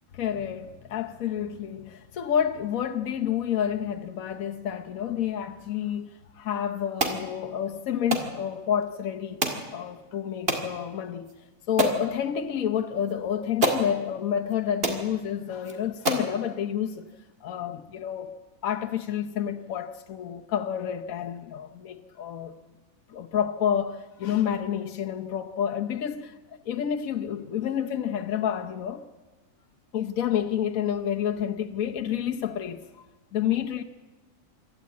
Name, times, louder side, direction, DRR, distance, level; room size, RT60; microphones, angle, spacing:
voice 1, 0.1-11.3 11.7-17.1 17.4-18.3 18.6-22.5 23.1-26.4 26.7-29.0 29.9-33.0 33.3-33.8, left 9 dB, 80° left, 1.3 m, -29 dB
sound 1, 7.0-7.2 8.1-8.3 9.4-9.7 10.5-10.7 11.3-11.4 11.8-12.0 13.1-13.2 13.6-13.9 14.5-14.6 14.8-15.0 15.6-15.7 16.1-16.3, right 1 dB, 45° right, 2.3 m, -26 dB
25.5 x 13.0 x 8.4 m
omnidirectional pair, 1.4 m